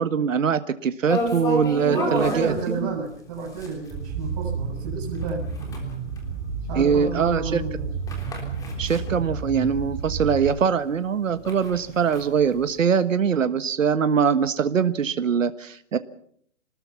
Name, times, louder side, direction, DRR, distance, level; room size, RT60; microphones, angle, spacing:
voice 1, 0.0-2.9 6.7-7.6 8.8-16.0, right 7 dB, 75° right, 11 dB, 1.5 m, -22 dB
sound 1, 1.1-10.2 10.6-10.7 11.1-12.8, left 1 dB, 10° left, 3.5 m, -32 dB
voice 2, 1.9-5.5 6.7-7.9, right 4 dB, 30° right, 2 dB, 7.1 m, -30 dB
sound 2, 3.9-10.5, right 4 dB, 10° right, 3.7 m, -31 dB
27.0 x 20.0 x 5.9 m, 0.66 s
hypercardioid pair, 160°, 39 cm